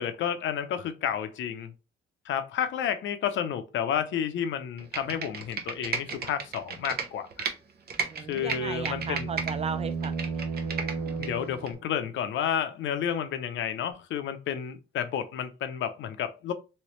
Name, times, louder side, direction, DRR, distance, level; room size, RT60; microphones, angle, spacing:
voice 1, 0.0-1.7 2.3-7.5 8.3-9.3 11.2-16.5, left 8 dB, 75° left, 0.6 m, -31 dB
Computer keyboard, 4.8-7.5 7.9-9.5 9.9-11.3 11.7-11.8, right 5 dB, 50° right, 0.8 m, -33 dB
sound 1, 8.0-11.9, right 5 dB, 90° right, 0.6 m, -34 dB
voice 2, 8.1-10.4, right 6 dB, 30° right, 0.4 m, -36 dB
3.2 x 3.1 x 3.0 m
cardioid pair, 90°, 20 cm